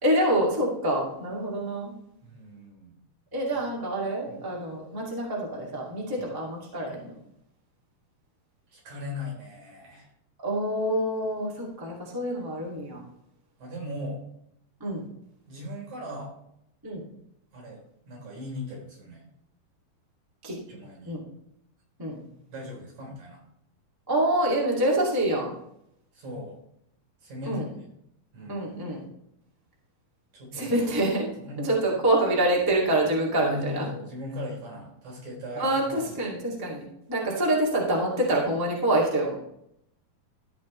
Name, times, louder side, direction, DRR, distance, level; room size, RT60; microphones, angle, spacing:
voice 1, 0.0-1.9 3.3-7.2 10.4-13.0 14.8-15.1 16.8-17.0 20.4-20.6 21.0-21.2 22.0-22.2 24.1-25.5 27.5-27.7 28.5-29.0 30.5-31.3 31.6-33.9 35.6-39.4, right 1 dB, 10° right, -4 dB, 1.9 m, -26 dB
voice 2, 2.2-2.9 4.3-4.4 6.2-6.3 8.7-10.1 13.6-14.2 15.5-16.3 17.5-19.3 20.7-21.2 22.5-23.4 26.1-26.6 27.2-27.9 28.3-28.7 30.3-30.8 31.3-31.7 33.4-36.2, left 1 dB, 60° right, 0 dB, 5.3 m, -38 dB
14.0 x 8.3 x 3.3 m, 0.76 s
omnidirectional pair, 3.9 m